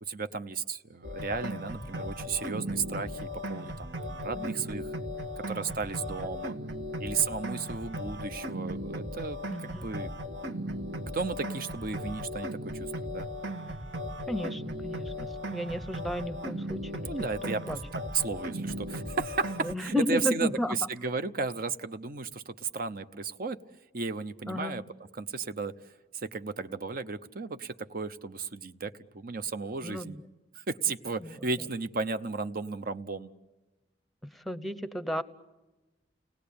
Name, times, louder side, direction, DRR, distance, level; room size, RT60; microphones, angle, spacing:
voice 1, 0.0-4.9 5.4-6.6 7.0-10.1 11.1-13.3 17.0-23.6 23.9-24.8 25.1-25.8 26.1-30.2 30.5-33.3, right 4 dB, 55° right, 10 dB, 0.8 m, -34 dB
sound 1, 1.0-19.7, equal, 75° right, 1.7 m, -37 dB
voice 2, 9.5-9.8 14.3-17.1 17.7-17.8 19.6-20.8 24.5-24.8 29.8-30.1 34.5-35.2, left 1 dB, ahead, 13 dB, 0.8 m, -33 dB
30.0 x 19.0 x 8.5 m, 1.1 s
head